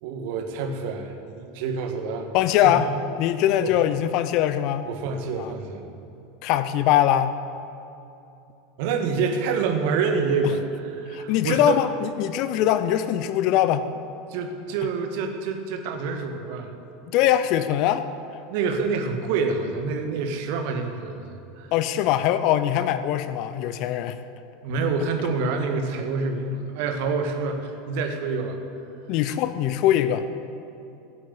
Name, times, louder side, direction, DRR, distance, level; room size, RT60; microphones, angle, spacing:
voice 1, 0.0-2.3 2.6-2.9 3.6-3.9 4.9-5.9 8.8-11.8 14.3-16.7 18.5-21.2 21.6-21.7 24.6-28.6, right 4 dB, 55° right, 5 dB, 1.7 m, -27 dB
voice 2, 2.3-2.9 3.2-4.8 5.4-5.5 6.4-7.4 10.4-10.5 11.1-13.9 17.1-18.1 21.7-24.2 29.1-30.3, left 11 dB, 50° left, 12 dB, 0.7 m, -22 dB
16.0 x 8.4 x 8.5 m, 2.7 s
figure-of-eight pair, 80°, 0 cm